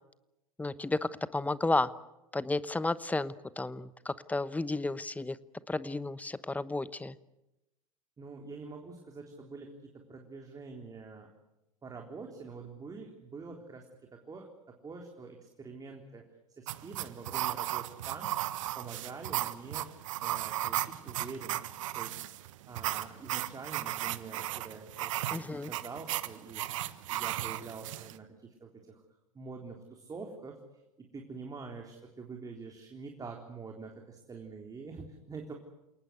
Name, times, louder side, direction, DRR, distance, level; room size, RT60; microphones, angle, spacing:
voice 1, 0.6-1.9 2.3-5.4 5.7-7.1 25.3-25.7, left 2 dB, 10° left, 16 dB, 1.0 m, -32 dB
voice 2, 8.2-11.3 11.8-13.9 14.1-14.5 14.8-18.3 18.8-19.9 20.2-26.8 27.1-29.0 29.3-30.6 31.0-35.5, right 4 dB, 20° right, 2 dB, 3.8 m, -46 dB
sound 1, 16.7-28.2, right 14 dB, 65° right, 1.3 m, -35 dB
29.0 x 19.0 x 8.1 m, 0.93 s
figure-of-eight pair, 85°, 18 cm